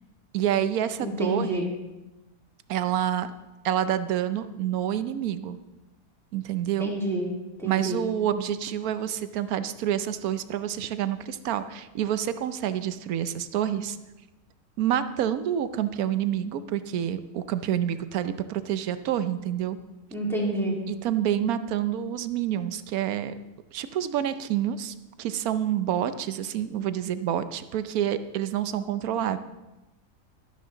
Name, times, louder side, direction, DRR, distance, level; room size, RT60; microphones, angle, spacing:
voice 1, 0.3-1.6 2.7-3.3 3.6-5.6 6.3-6.9 7.6-14.0 14.8-19.8 20.9-23.4 23.7-29.4, right 10 dB, 75° right, 12 dB, 1.1 m, -28 dB
voice 2, 1.0-1.7 6.8-7.3 7.6-8.0 20.1-20.7, right 1 dB, ahead, -4 dB, 2.6 m, -28 dB
12.0 x 11.5 x 3.9 m, 1.0 s
omnidirectional pair, 1.6 m